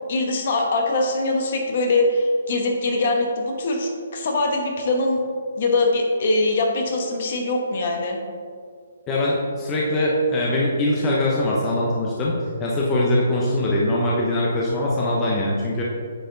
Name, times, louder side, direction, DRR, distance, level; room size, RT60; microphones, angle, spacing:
voice 1, 0.1-5.2 5.6-8.2, left 2 dB, 45° left, 2 dB, 1.2 m, -22 dB
voice 2, 9.1-12.3 12.6-15.8, left 1 dB, 15° left, -4 dB, 0.8 m, -22 dB
9.1 x 4.6 x 3.9 m, 2.1 s
hypercardioid pair, 165°, 0 cm